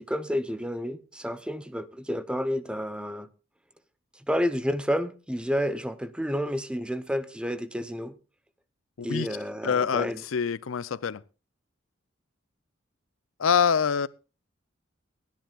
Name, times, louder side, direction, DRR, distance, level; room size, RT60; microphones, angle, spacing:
voice 1, 0.0-3.3 4.1-8.2 9.0-10.2, equal, 5° right, 0.7 m, -30 dB
voice 2, 9.6-11.2 13.4-14.1, left 6 dB, 90° left, 0.5 m, -25 dB
23.0 x 10.5 x 2.4 m
head